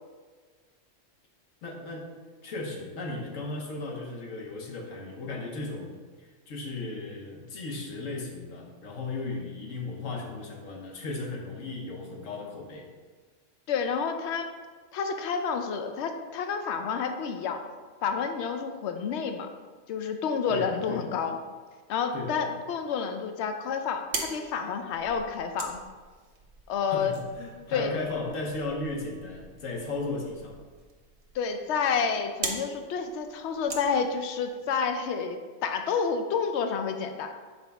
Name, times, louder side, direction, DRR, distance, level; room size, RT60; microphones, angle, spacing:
voice 1, 1.6-2.1 2.4-5.9 6.2-12.9 20.5-21.1 22.1-22.4 26.8-30.6, left 3 dB, 85° left, 0 dB, 1.4 m, -36 dB
voice 2, 13.7-14.5 14.9-17.6 18.0-19.5 19.9-21.4 21.9-25.8 26.7-27.1 27.7-28.0 31.3-37.3, left 6 dB, 70° left, 6 dB, 0.8 m, -29 dB
sound 1, 23.8-34.7, right 3 dB, 65° right, 1.1 m, -42 dB
6.6 x 4.4 x 3.4 m, 1.4 s
omnidirectional pair, 1.3 m